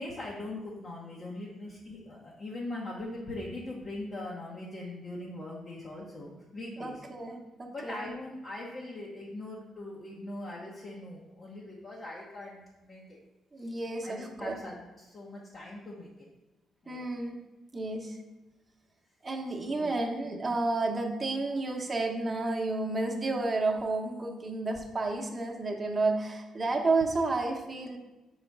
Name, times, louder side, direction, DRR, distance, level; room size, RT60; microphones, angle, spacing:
voice 1, 0.0-7.0 7.7-13.2 13.6-13.7 14.0-16.1 16.8-17.0 19.6-20.1, left 2 dB, 40° left, -4 dB, 1.0 m, -41 dB
voice 2, 6.8-8.1 13.5-14.6 16.9-17.4 17.7-18.2 19.2-28.0, right 3 dB, 25° right, 1 dB, 1.0 m, -31 dB
4.9 x 4.0 x 4.6 m, 1.1 s
cardioid pair, 90°, 0 cm